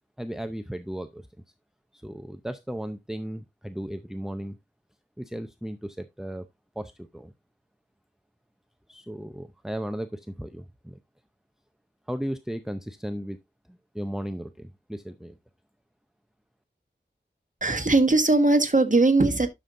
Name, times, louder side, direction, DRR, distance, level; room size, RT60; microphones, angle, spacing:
voice 1, 0.2-1.3 1.9-4.6 5.2-6.5 6.8-7.3 8.9-11.0 12.1-13.4 13.7-15.4, equal, ahead, 0.6 m, -35 dB
voice 2, 17.6-19.5, right 2 dB, 40° right, 1.5 m, -20 dB
11.0 x 6.9 x 2.6 m
wide cardioid pair, 50°, 19 cm